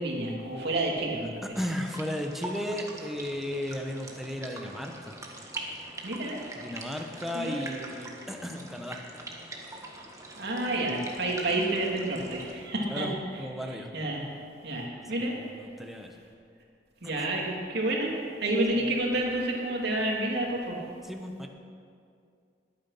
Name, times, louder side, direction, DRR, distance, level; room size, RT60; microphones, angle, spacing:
voice 1, 0.0-1.5 6.0-6.4 7.3-7.7 10.4-13.1 13.3-15.4 16.0-16.1 17.0-18.1 18.4-20.8, right 1 dB, 65° right, -1 dB, 2.7 m, -30 dB
voice 2, 1.5-5.2 6.6-9.0 12.9-13.1 13.4-13.9 14.8-16.1 17.2-17.3 21.0-21.5, left 1 dB, ahead, 3 dB, 1.2 m, -35 dB
sound 1, 1.5-12.5, right 2 dB, 20° right, 1.6 m, -43 dB
20.5 x 9.2 x 5.8 m, 2.3 s
head